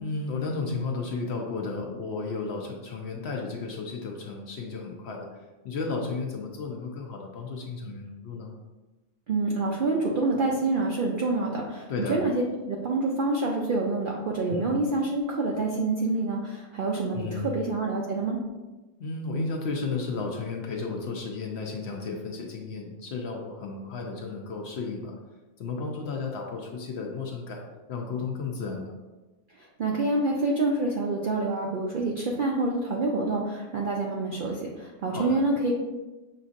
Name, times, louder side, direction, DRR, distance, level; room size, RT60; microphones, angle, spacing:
voice 1, 0.0-8.5 11.9-12.2 14.5-14.8 17.1-17.6 19.0-25.1 25.6-27.6 27.9-28.9 35.1-35.5, left 4 dB, 65° left, 1 dB, 0.7 m, -33 dB
voice 2, 9.3-18.4 29.6-35.8, right 2 dB, 70° right, -1 dB, 0.5 m, -27 dB
6.5 x 2.6 x 2.4 m, 1.1 s
omnidirectional pair, 1.4 m